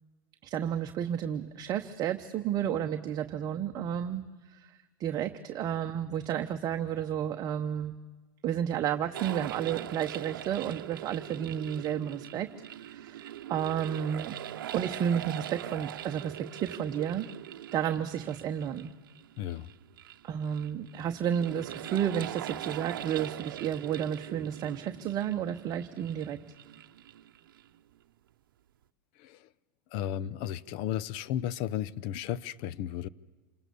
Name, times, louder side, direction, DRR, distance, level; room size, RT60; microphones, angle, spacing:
voice 1, 0.4-4.2 4.5-4.7 5.0-7.9 8.4-12.5 12.8-14.3 14.7-17.2 17.7-18.9 20.2-26.4, right 9 dB, 35° right, 0.9 m, -32 dB
sound 1, 9.1-27.8, right 12 dB, 85° right, 0.8 m, -42 dB
voice 2, 19.4-19.7 29.2-29.5 29.9-33.1, left 11 dB, 55° left, 0.7 m, -34 dB
27.5 x 19.0 x 6.9 m
supercardioid pair, 120°, 11 cm